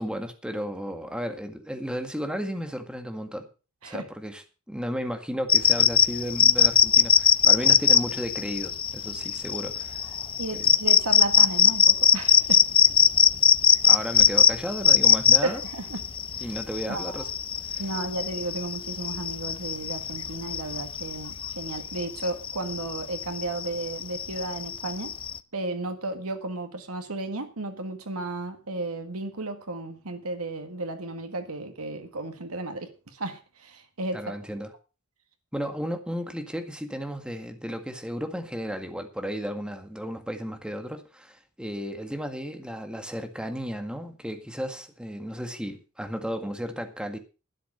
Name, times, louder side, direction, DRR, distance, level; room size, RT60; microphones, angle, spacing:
voice 1, 0.0-3.5 3.8-10.0 10.5-10.7 13.8-15.6 16.4-17.3 17.7-17.9 34.1-34.7 35.5-47.2, equal, 5° right, 1.9 m, -34 dB
sound 1, 5.5-25.4, left 8 dB, 25° left, 0.5 m, -21 dB
voice 2, 10.4-12.7 15.4-16.0 16.4-16.5 16.9-17.3 17.8-25.1 25.5-34.2, right 2 dB, 85° right, 1.8 m, -34 dB
12.5 x 10.0 x 5.6 m
head